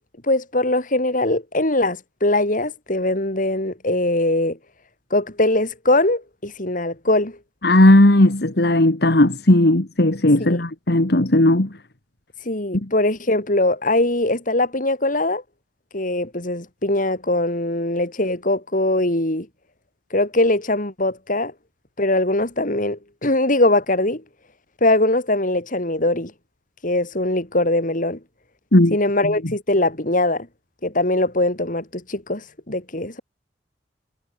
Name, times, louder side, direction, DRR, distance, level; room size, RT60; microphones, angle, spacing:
voice 1, 0.2-4.6 5.1-7.4 10.4-10.6 12.4-15.4 15.9-19.5 20.1-21.5 22.0-24.2 24.8-26.3 26.8-28.2 28.9-30.5 30.8-33.2, left 2 dB, 50° left, 5.6 m, -21 dB
voice 2, 7.6-11.7 28.7-29.0, left 1 dB, 65° left, 2.0 m, -15 dB
head